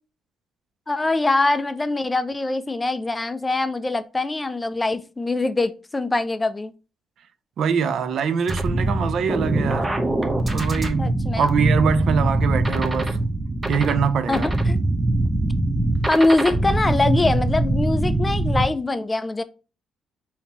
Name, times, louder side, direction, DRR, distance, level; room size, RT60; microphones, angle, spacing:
voice 1, 0.9-6.7 11.0-11.5 14.3-14.8 16.1-19.4, left 2 dB, 20° left, 0.3 m, -23 dB
voice 2, 7.6-9.9 10.5-13.2 13.7-14.5, right 6 dB, 65° right, 0.4 m, -23 dB
sound 1, 8.5-18.7, right 1 dB, 20° right, 0.7 m, -22 dB
3.4 x 2.7 x 2.8 m
cardioid pair, 90°, 0 cm